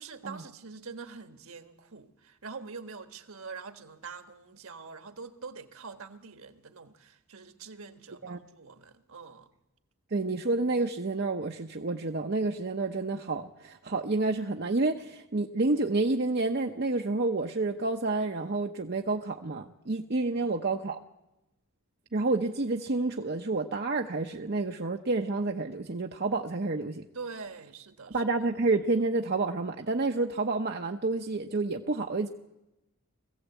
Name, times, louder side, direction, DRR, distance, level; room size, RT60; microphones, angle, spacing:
voice 1, 0.0-9.5 20.3-20.5 27.1-28.2, right 4 dB, 65° right, 1.5 m, -44 dB
voice 2, 10.1-21.0 22.1-27.0 28.1-32.3, right 3 dB, 45° right, 0.8 m, -29 dB
22.5 x 15.5 x 8.2 m
head